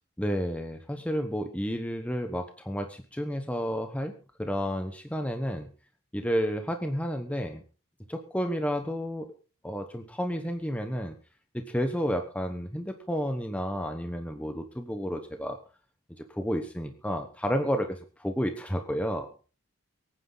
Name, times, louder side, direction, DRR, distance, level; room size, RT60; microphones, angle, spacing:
voice 1, 0.2-4.1 4.4-5.7 6.1-7.6 8.1-9.3 9.6-11.1 11.5-15.6 16.2-19.3, equal, 5° left, 6 dB, 1.0 m, -31 dB
24.0 x 9.6 x 4.0 m, 0.37 s
head